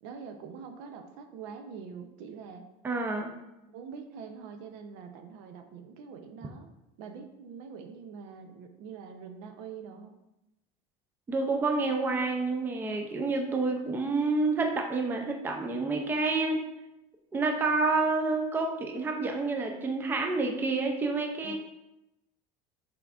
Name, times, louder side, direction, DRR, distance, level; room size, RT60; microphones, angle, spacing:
voice 1, 0.0-2.6 3.7-6.7 7.0-10.1 21.4-21.5, right 6 dB, 70° right, 6 dB, 0.6 m, -44 dB
voice 2, 2.8-3.3 11.3-16.6 17.3-21.5, right 3 dB, 10° right, 2 dB, 0.4 m, -28 dB
5.7 x 3.7 x 2.4 m, 0.95 s
cardioid pair, 155°, 17 cm